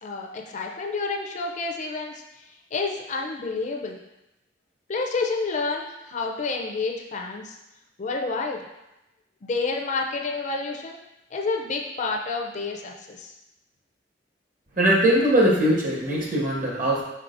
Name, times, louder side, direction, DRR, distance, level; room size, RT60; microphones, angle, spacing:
voice 1, 0.0-2.2 2.7-4.0 4.9-7.6 8.0-8.6 9.4-11.0 11.3-13.3, left 3 dB, 40° left, 1 dB, 0.4 m, -29 dB
voice 2, 14.8-17.0, right 1 dB, 45° right, -3 dB, 1.1 m, -21 dB
4.7 x 4.3 x 2.5 m, 0.94 s
head